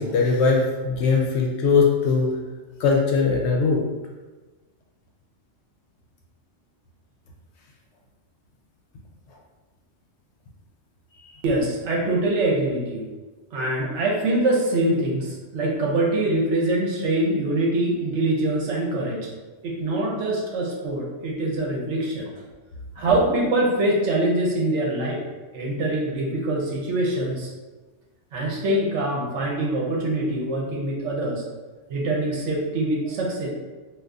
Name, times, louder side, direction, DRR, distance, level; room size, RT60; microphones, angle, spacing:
voice 1, 0.0-2.3 2.8-3.8 11.2-11.3, left 4 dB, 70° left, 0 dB, 0.8 m, -20 dB
voice 2, 11.4-13.1 13.5-19.3 19.6-22.3 23.0-25.2 25.5-27.5 28.3-31.4 31.9-33.5, right 1 dB, 70° right, -2 dB, 1.0 m, -24 dB
2.6 x 2.4 x 3.4 m, 1.2 s
omnidirectional pair, 1.3 m